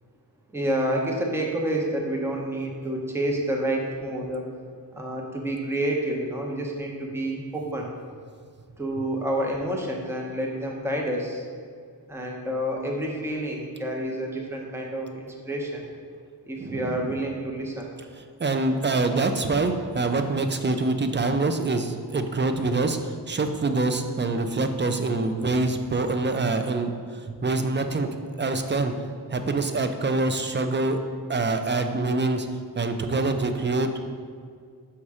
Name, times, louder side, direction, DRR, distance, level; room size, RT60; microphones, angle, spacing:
voice 1, 0.5-4.4 4.9-7.9 8.8-11.4 12.1-15.8 16.4-17.9, right 1 dB, 5° right, 0 dB, 0.8 m, -29 dB
voice 2, 16.6-17.1 18.4-28.1 28.4-28.9 29.3-31.0 31.3-32.5 32.8-33.9, right 3 dB, 30° right, 7 dB, 0.5 m, -25 dB
5.9 x 4.2 x 4.9 m, 2.1 s
wide cardioid pair, 80°, 41 cm